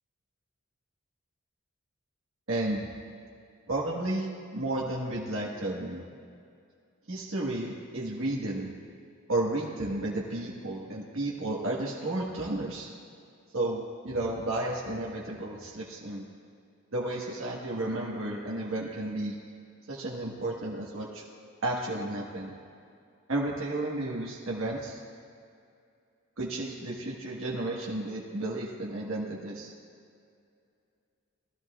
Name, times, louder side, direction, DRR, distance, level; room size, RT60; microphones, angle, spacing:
voice 1, 2.5-2.9 3.7-6.0 7.1-8.7 9.3-12.9 13.5-16.3 16.9-19.4 19.9-21.2 21.6-22.5 23.3-25.0 26.4-29.7, right 2 dB, 70° right, -4 dB, 1.5 m, -32 dB
20.5 x 13.5 x 2.4 m, 2.4 s
head